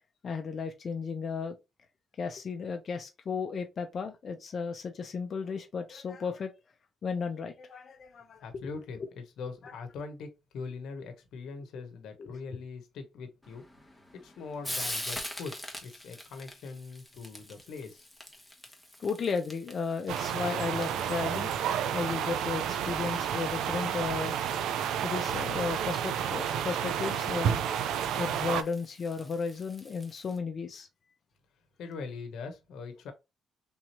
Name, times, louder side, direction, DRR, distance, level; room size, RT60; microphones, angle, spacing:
voice 1, 0.2-1.6 2.2-6.5 7.0-8.7 9.0-9.1 9.6-9.7 12.2-12.6 19.0-21.5 21.9-24.3 25.0-27.6 28.2-30.9, left 5 dB, 50° left, 0.6 m, -34 dB
voice 2, 8.4-9.0 9.4-10.3 10.5-13.6 14.1-18.0 31.8-33.1, left 4 dB, 80° left, 0.9 m, -42 dB
Frying (food), 13.4-30.4, left 1 dB, 5° left, 1.0 m, -45 dB
sound 1, 20.1-28.6, right 9 dB, 85° right, 0.4 m, -31 dB
3.6 x 2.9 x 2.9 m
cardioid pair, 90°, 0 cm